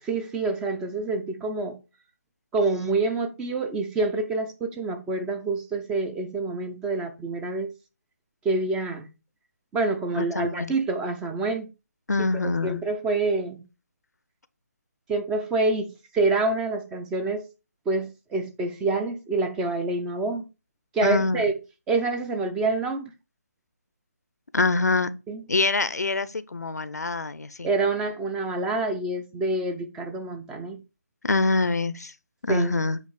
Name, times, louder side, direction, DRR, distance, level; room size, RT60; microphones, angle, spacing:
voice 1, 0.0-1.8 2.5-7.7 8.4-9.1 9.7-11.7 12.6-13.6 15.1-15.9 16.1-17.5 17.9-20.4 20.9-21.5 21.9-23.1 25.3-25.4 27.6-30.8 32.5-32.7, right 3 dB, 5° right, 0.4 m, -27 dB
voice 2, 10.1-10.7 12.1-12.8 21.0-21.4 24.5-25.1 25.5-27.7 31.2-32.1 32.4-33.0, left 3 dB, 75° left, 0.6 m, -25 dB
8.2 x 3.1 x 4.9 m
figure-of-eight pair, 150°, 9 cm